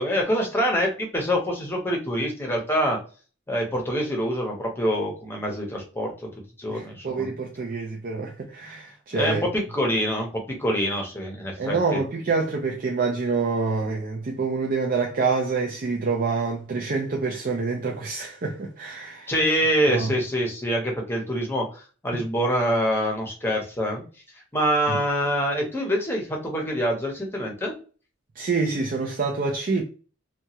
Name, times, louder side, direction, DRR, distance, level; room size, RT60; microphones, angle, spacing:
voice 1, 0.0-3.0 3.5-6.1 6.6-7.3 9.1-12.0 19.3-24.0 24.5-27.8, equal, 10° left, 0.8 m, -25 dB
voice 2, 6.7-9.4 11.6-19.3 19.9-20.1 24.9-25.0 28.4-29.8, right 4 dB, 45° right, 0.4 m, -27 dB
2.9 x 2.3 x 2.8 m
head